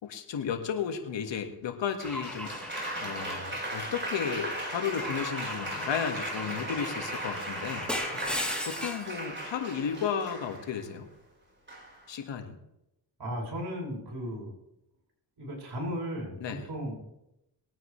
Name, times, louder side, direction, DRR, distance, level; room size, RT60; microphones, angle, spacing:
voice 1, 0.0-2.5 3.0-7.9 8.7-11.1 12.1-12.6 16.4-16.7, left 7 dB, 70° left, 5 dB, 1.9 m, -33 dB
Car / Engine / Glass, 2.0-4.3 5.0-9.1, left 1 dB, ahead, 3.2 m, -38 dB
Applause, 2.0-10.8 11.7-12.1, right 1 dB, 25° right, 4.9 m, -37 dB
voice 2, 13.2-14.5 15.4-16.4 16.6-16.9, equal, 55° right, -2 dB, 6.1 m, -35 dB
21.5 x 9.2 x 3.3 m, 0.88 s
supercardioid pair, 60°, 46 cm